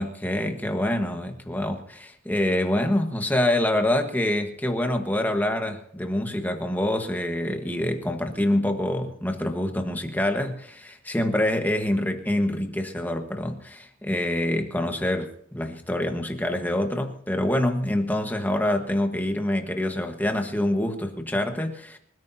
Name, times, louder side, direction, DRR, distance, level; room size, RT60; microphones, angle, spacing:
voice 1, 0.0-22.0, left 1 dB, 10° left, 1.3 m, -26 dB
26.0 x 14.0 x 2.7 m
head